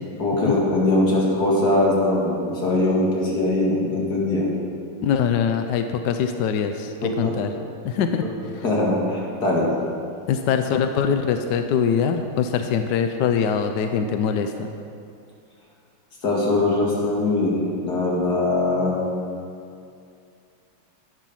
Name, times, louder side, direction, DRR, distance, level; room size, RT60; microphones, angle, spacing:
voice 1, 0.2-4.5 7.0-7.3 8.6-9.7 16.2-17.6 17.8-19.0, left 2 dB, 45° left, -4 dB, 2.6 m, -21 dB
voice 2, 5.0-7.5 7.8-8.2 8.5-8.6 10.3-14.5, left 7 dB, 75° left, 7 dB, 1.0 m, -23 dB
12.0 x 9.1 x 5.6 m, 2.5 s
omnidirectional pair, 2.4 m